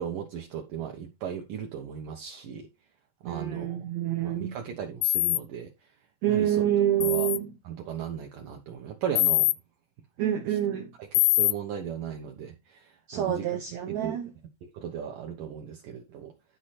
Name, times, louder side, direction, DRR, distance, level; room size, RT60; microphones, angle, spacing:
voice 1, 0.0-2.7 3.2-3.8 4.2-5.7 6.3-6.6 7.0-7.3 7.7-9.5 11.2-13.5 14.0-14.2 14.6-16.3, right 8 dB, 65° right, 2.4 m, -36 dB
voice 2, 3.2-4.6 6.2-7.5 10.2-10.9 13.1-14.3, right 11 dB, 85° right, 1.6 m, -27 dB
sound 1, 5.0-5.4 7.0-7.4 9.2-9.5 11.1-11.5, left 19 dB, 80° left, 2.1 m, -23 dB
11.5 x 4.8 x 4.3 m
omnidirectional pair, 4.6 m